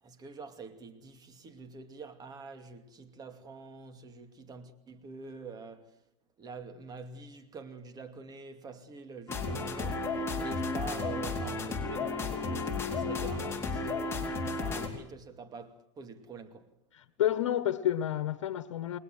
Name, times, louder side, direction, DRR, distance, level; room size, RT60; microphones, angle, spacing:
voice 1, 0.0-6.0 6.4-16.7, right 4 dB, 25° right, 2.6 m, -46 dB
sound 1, 9.3-14.9, left 3 dB, 15° left, 4.4 m, -33 dB
voice 2, 16.9-19.0, left 11 dB, 80° left, 1.4 m, -30 dB
29.5 x 21.5 x 7.8 m
supercardioid pair, 120°, 16 cm